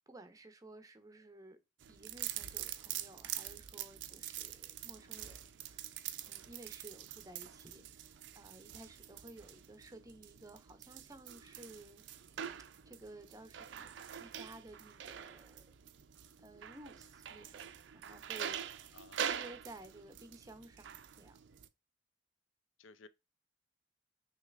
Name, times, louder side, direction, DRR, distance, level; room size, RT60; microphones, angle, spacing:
voice 1, 0.1-1.6 1.9-5.9 6.3-12.0 12.9-15.6 16.4-17.6 17.9-21.4, right 2 dB, 20° right, 0.6 m, -55 dB
sound 1, 1.8-21.7, right 10 dB, 65° right, 0.4 m, -45 dB
voice 2, 18.9-19.5 22.8-23.1, left 4 dB, 85° left, 0.5 m, -57 dB
6.2 x 2.9 x 2.4 m
head